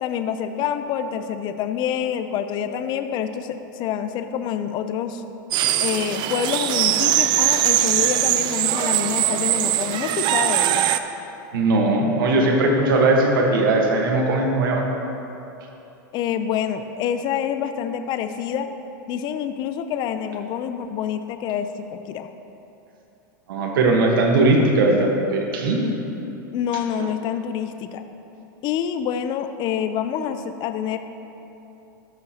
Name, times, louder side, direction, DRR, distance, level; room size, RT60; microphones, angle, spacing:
voice 1, 0.0-5.2 5.8-10.9 16.1-18.7 19.1-22.3 25.8-26.0 26.5-28.0 28.6-31.0, left 8 dB, 40° left, 9 dB, 0.4 m, -27 dB
sound 1, 5.5-11.0, right 12 dB, 40° right, 0.4 m, -21 dB
voice 2, 11.5-14.8 23.5-25.9, right 2 dB, 80° right, 1 dB, 1.3 m, -19 dB
13.0 x 6.7 x 2.8 m, 2.9 s
hypercardioid pair, 115°, 11 cm